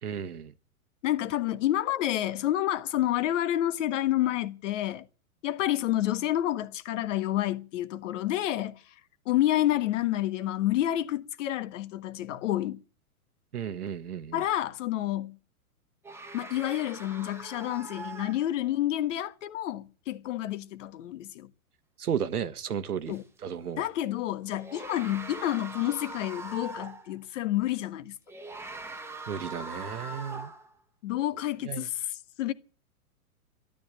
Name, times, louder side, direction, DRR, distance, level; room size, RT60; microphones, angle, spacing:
voice 1, 0.0-0.5 13.5-14.4 22.0-23.8 29.3-30.5 31.6-31.9, right 8 dB, 85° right, 1.5 m, -34 dB
voice 2, 1.0-5.0 5.4-8.8 9.2-12.8 14.3-15.4 16.3-21.5 23.1-23.2 23.8-28.1 31.0-32.5, left 13 dB, 55° left, 1.5 m, -29 dB
sound 1, 16.0-18.8 23.1-23.2 24.5-27.1 28.3-30.7, right 2 dB, 5° right, 1.4 m, -42 dB
12.5 x 12.0 x 9.3 m
hypercardioid pair, 125°, 44 cm